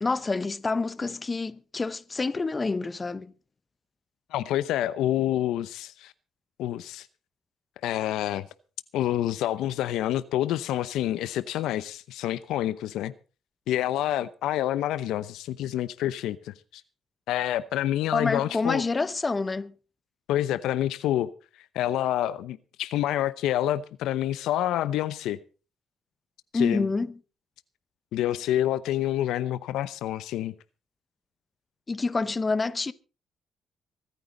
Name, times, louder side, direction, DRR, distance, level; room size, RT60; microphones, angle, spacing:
voice 1, 0.0-3.3 18.1-19.7 26.5-27.1 31.9-32.9, left 3 dB, 25° left, 0.9 m, -27 dB
voice 2, 4.3-6.1 6.6-7.1 7.8-8.5 8.9-13.1 13.7-16.8 17.3-18.8 20.3-21.3 21.7-25.4 26.5-26.9 28.1-30.5, left 12 dB, 90° left, 0.8 m, -27 dB
25.0 x 9.4 x 3.9 m
cardioid pair, 90°, 0 cm